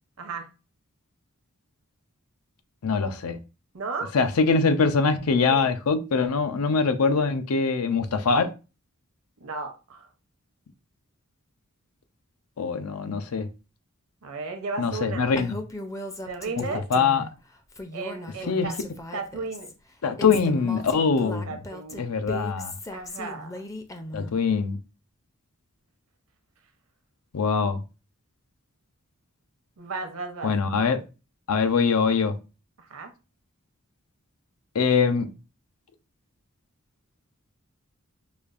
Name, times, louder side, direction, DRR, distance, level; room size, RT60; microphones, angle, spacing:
voice 1, 0.2-0.5 3.7-4.1 5.5-5.7 9.4-10.1 14.2-15.3 16.2-16.9 17.9-18.8 19.1-19.7 21.5-22.0 22.9-23.5 29.8-30.5 32.8-33.1, right 4 dB, 70° right, 0.7 m, -34 dB
voice 2, 2.8-3.4 4.1-8.5 12.6-13.5 14.8-15.6 16.6-17.3 18.5-18.7 20.0-21.6 22.0-22.7 24.1-24.8 27.3-27.8 30.4-31.0 31.5-32.4 34.7-35.3, left 5 dB, 90° left, 0.5 m, -23 dB
Female speech woman speaking, 15.4-17.3 17.7-19.7 20.2-24.3, left 1 dB, 15° left, 0.4 m, -38 dB
5.0 x 2.3 x 2.4 m
head